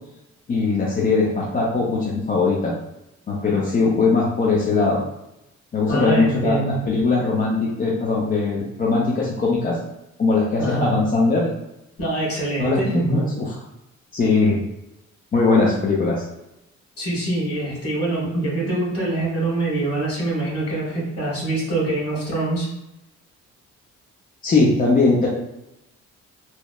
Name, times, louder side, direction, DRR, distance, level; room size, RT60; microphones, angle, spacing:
voice 1, 0.5-2.8 3.3-5.0 5.7-9.8 10.2-11.5 12.6-13.5 14.1-14.6 15.3-16.2 24.4-25.3, left 3 dB, 30° left, -4 dB, 0.5 m, -20 dB
voice 2, 5.9-6.8 10.6-10.9 12.0-13.2 17.0-22.7, right 2 dB, 50° left, -4 dB, 1.3 m, -24 dB
2.9 x 2.0 x 2.2 m, 0.88 s
cardioid pair, 90°, 30 cm